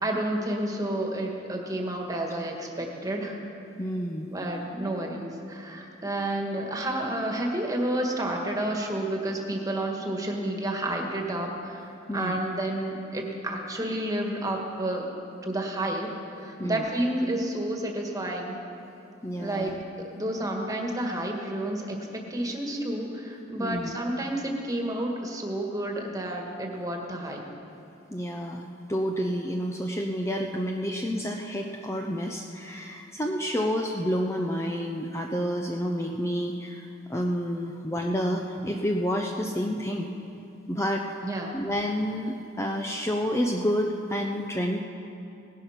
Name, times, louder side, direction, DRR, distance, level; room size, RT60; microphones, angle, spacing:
voice 1, 0.0-3.4 4.3-15.1 15.4-16.1 16.4-18.6 19.4-19.7 20.0-22.0 22.3-27.4 41.2-41.5, right 1 dB, 20° right, 1 dB, 1.7 m, -30 dB
voice 2, 3.8-4.3 12.1-12.4 16.6-16.8 19.2-19.8 23.6-24.0 28.1-40.1 40.7-41.0 41.5-44.8, equal, 15° left, 1 dB, 0.7 m, -29 dB
18.0 x 11.0 x 5.8 m, 2.8 s
head